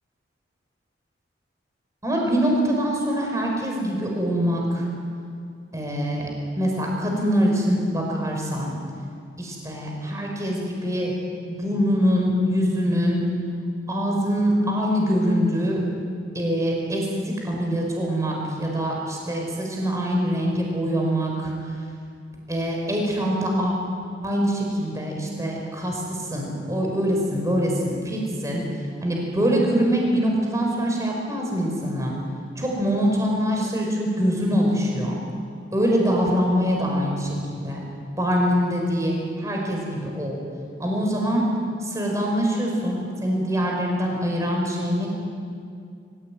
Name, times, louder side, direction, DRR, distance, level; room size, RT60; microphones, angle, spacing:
voice 1, 2.0-4.8 5.7-6.3 6.6-8.8 9.4-11.1 11.5-13.2 13.9-15.8 16.3-21.5 22.5-23.7 24.2-28.6 29.0-32.2 32.6-35.1 35.7-37.8 38.2-40.4 40.8-41.5 41.8-45.1, equal, 15° right, -1 dB, 5.3 m, -24 dB
28.0 x 16.0 x 9.3 m, 2.3 s
head